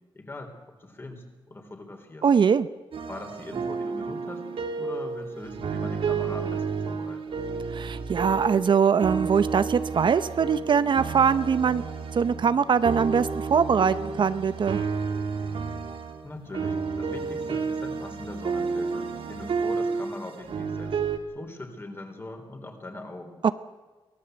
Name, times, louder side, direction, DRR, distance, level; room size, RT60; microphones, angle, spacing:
voice 1, 0.1-2.3 3.1-4.5 4.8-7.3 16.2-21.0 21.3-23.4, left 2 dB, 25° left, 5 dB, 3.7 m, -41 dB
voice 2, 2.2-2.7 7.7-11.8 12.1-14.8 23.4-23.5, right 6 dB, 60° right, 14 dB, 0.7 m, -22 dB
sound 1, 2.9-8.7 9.0-21.2, right 5 dB, 80° right, 2.4 m, -31 dB
23.5 x 17.0 x 8.0 m, 1.3 s
wide cardioid pair, 140°, 9 cm